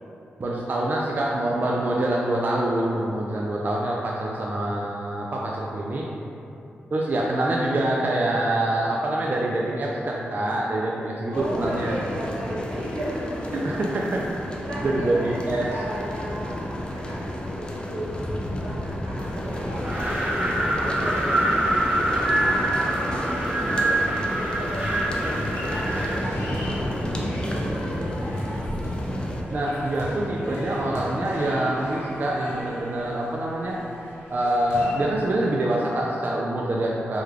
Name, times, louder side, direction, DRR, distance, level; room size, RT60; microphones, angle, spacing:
voice 1, 0.4-6.0 6.9-11.9 13.6-14.2 14.8-15.7 29.5-33.8 34.3-37.2, right 1 dB, 45° right, -3 dB, 0.3 m, -25 dB
sound 1, 11.3-29.4, equal, 20° left, 0.4 m, -31 dB
voice 2, 11.3-13.5 14.6-28.1, equal, 85° right, -10 dB, 1.2 m, -36 dB
sound 2, 19.1-35.6, equal, 85° left, 0.9 m, -38 dB
Wind, 19.8-26.3, right 1 dB, 30° right, 0.7 m, -25 dB
3.4 x 2.3 x 3.2 m, 2.8 s
cardioid pair, 65°, 4 cm